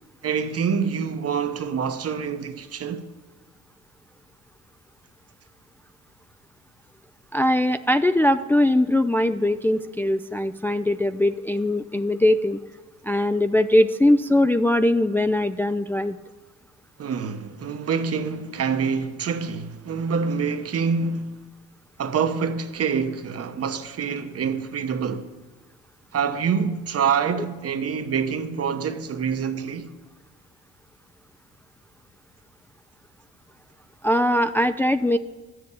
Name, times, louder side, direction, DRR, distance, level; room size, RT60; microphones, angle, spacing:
voice 1, 0.2-3.1 17.0-21.4 22.0-25.3 26.1-29.9, right 6 dB, 50° right, 1.0 m, -26 dB
voice 2, 7.3-12.6 13.0-16.2 34.0-35.2, left 1 dB, 5° left, 0.3 m, -21 dB
12.0 x 7.8 x 8.3 m
cardioid pair, 90°, 30 cm